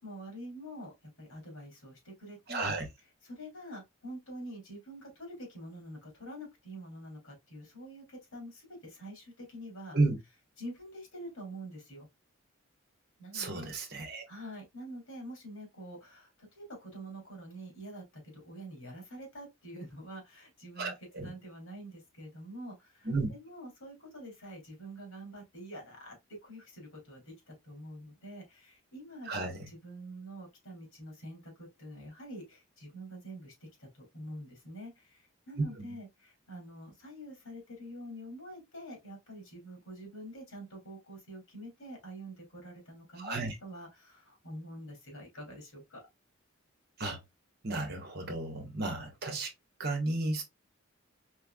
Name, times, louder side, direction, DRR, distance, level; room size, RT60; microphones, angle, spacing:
voice 1, 0.0-2.7 3.2-10.0 10.6-12.1 13.2-13.7 14.3-29.4 29.7-33.5 33.8-46.0, right 1 dB, 80° left, 2.5 m, -46 dB
voice 2, 2.5-2.8 9.9-10.1 13.3-14.2 20.8-21.3 23.0-23.3 29.3-29.6 35.6-35.9 43.2-43.5 47.0-47.2 47.6-49.5 49.8-50.4, right 2 dB, 50° right, 1.3 m, -33 dB
4.6 x 3.3 x 2.2 m
head